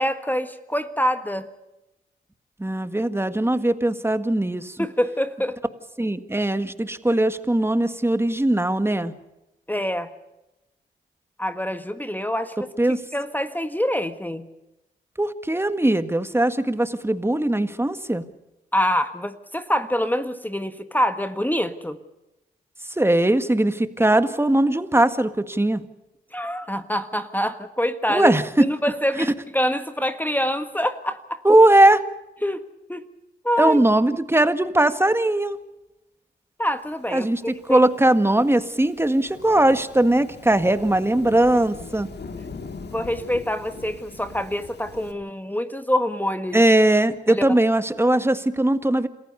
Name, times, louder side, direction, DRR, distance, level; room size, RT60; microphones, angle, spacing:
voice 1, 0.0-1.5 4.8-5.6 9.7-10.1 11.4-12.7 13.1-14.5 18.7-22.0 26.3-28.3 28.6-31.4 32.4-32.6 32.9-33.0 33.4-33.8 36.6-37.8 42.9-46.6 47.3-47.4, equal, 10° left, 9 dB, 1.6 m, -25 dB
voice 2, 2.6-4.9 6.0-9.1 12.8-13.0 15.2-18.2 23.0-25.8 28.1-28.7 29.2-29.3 31.4-32.0 33.6-35.6 37.1-42.1 46.5-49.1, right 1 dB, 10° right, 11 dB, 1.7 m, -20 dB
Thunderstorm / Rain, 37.4-45.1, left 4 dB, 55° left, 2.4 m, -41 dB
27.5 x 15.0 x 6.7 m, 0.96 s
supercardioid pair, 45°, 20 cm